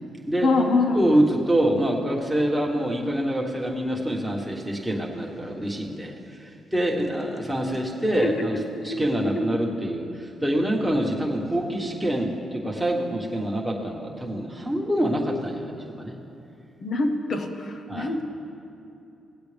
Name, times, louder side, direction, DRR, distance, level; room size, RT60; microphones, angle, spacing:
voice 1, 0.4-1.2 8.2-9.5 16.8-18.3, left 2 dB, 55° left, 5 dB, 0.9 m, -25 dB
voice 2, 0.9-6.1 6.4-8.5 8.8-16.1 17.9-18.1, right 1 dB, 5° right, -2 dB, 1.5 m, -25 dB
18.0 x 8.0 x 3.4 m, 2.7 s
cardioid pair, 85°, 0 cm